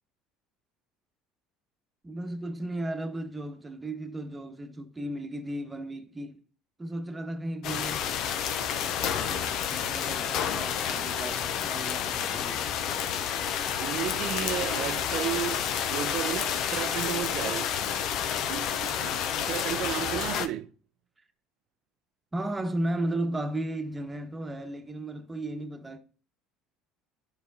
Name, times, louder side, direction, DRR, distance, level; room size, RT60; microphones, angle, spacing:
voice 1, 2.0-6.4 6.8-8.0 8.9-12.7 22.3-26.0, right 1 dB, 15° right, 1.2 m, -35 dB
sound 1, 7.6-20.5, left 8 dB, 55° left, 0.6 m, -30 dB
voice 2, 13.8-15.6 15.9-17.7 18.5-20.7, right 12 dB, 55° right, 0.5 m, -33 dB
12.5 x 5.1 x 2.7 m
hypercardioid pair, 65°, 0 cm